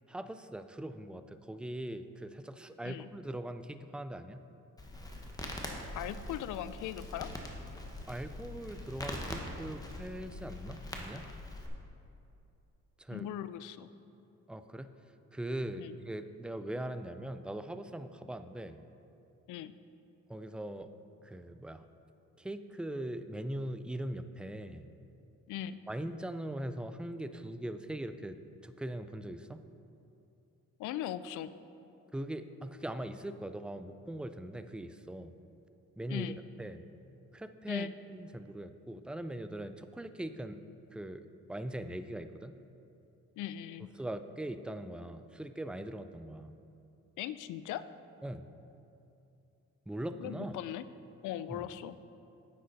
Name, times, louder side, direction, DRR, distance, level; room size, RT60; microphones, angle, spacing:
voice 1, 0.1-4.4 8.1-11.3 13.0-13.3 14.5-14.9 15.3-18.8 20.3-20.9 21.2-21.9 22.4-24.9 25.9-28.4 28.6-29.6 32.1-35.3 36.0-36.3 36.6-36.9 37.3-40.6 40.9-42.5 44.0-46.5 48.2-48.5 49.9-50.6 51.5-51.7, right 1 dB, 5° right, 10 dB, 0.3 m, -41 dB
Crackle, 4.8-11.7, left 1 dB, 10° left, 1.2 m, -43 dB
voice 2, 6.0-7.3 13.1-13.9 15.8-16.0 19.5-19.7 25.5-25.8 30.8-31.5 36.1-36.4 37.7-37.9 43.4-43.9 47.2-47.8 50.2-50.8 51.2-51.9, left 11 dB, 80° left, 14 dB, 0.5 m, -39 dB
9.7 x 7.6 x 4.1 m, 2.7 s
cardioid pair, 90°, 30 cm